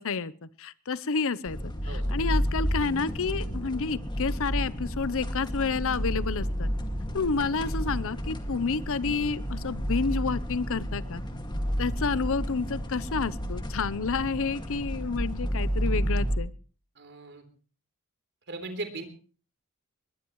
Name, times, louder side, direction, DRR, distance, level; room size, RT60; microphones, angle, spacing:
voice 1, 0.0-1.6 2.1-6.7 7.1-11.2 11.8-16.5, left 4 dB, 65° left, 17 dB, 0.8 m, -29 dB
sound 1, 1.5-16.4, equal, 20° left, 2.1 m, -31 dB
voice 2, 17.0-17.4 18.5-19.1, right 2 dB, 55° right, 7 dB, 3.6 m, -38 dB
21.0 x 21.0 x 3.2 m, 0.39 s
head